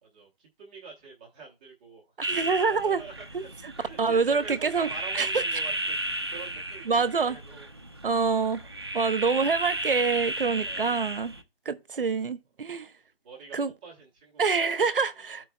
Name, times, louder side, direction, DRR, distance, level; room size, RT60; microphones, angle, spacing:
voice 1, 0.0-2.1 2.7-7.7 8.6-9.1 10.5-11.0 13.2-15.4, right 4 dB, 10° right, 0.8 m, -46 dB
sound 1, 2.2-11.4, right 1 dB, 25° right, 0.4 m, -34 dB
voice 2, 2.2-3.0 3.3-3.4 4.0-4.9 5.2-5.3 6.9-7.4 8.0-8.6 8.9-11.3 11.7-12.9 13.5-13.7 14.4-15.4, right 5 dB, 60° right, 0.7 m, -26 dB
13.0 x 4.5 x 2.2 m
figure-of-eight pair, 150°, 30 cm